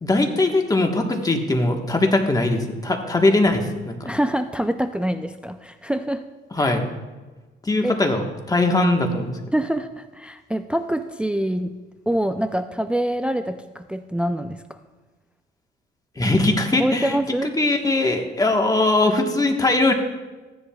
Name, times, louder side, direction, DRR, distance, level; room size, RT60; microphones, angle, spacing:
voice 1, 0.0-4.1 6.5-6.8 7.6-9.4 16.1-19.9, left 2 dB, 20° left, 3 dB, 1.3 m, -21 dB
voice 2, 4.0-6.2 6.6-6.8 7.8-7.9 9.5-11.8 12.1-14.8 16.8-17.5, right 1 dB, 5° right, 9 dB, 0.4 m, -25 dB
15.0 x 10.0 x 2.3 m, 1.2 s
cardioid pair, 90°, 20 cm